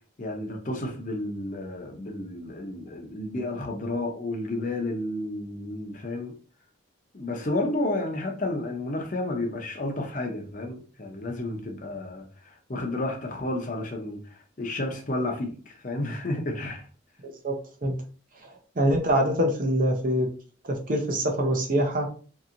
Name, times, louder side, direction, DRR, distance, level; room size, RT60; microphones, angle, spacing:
voice 1, 0.2-6.3 7.1-12.2 12.7-16.9, left 2 dB, 40° left, 0.6 m, -31 dB
voice 2, 17.2-17.6 17.8-18.0 18.4-20.3 20.6-22.1, equal, 45° right, 0.7 m, -25 dB
2.9 x 2.8 x 2.5 m
head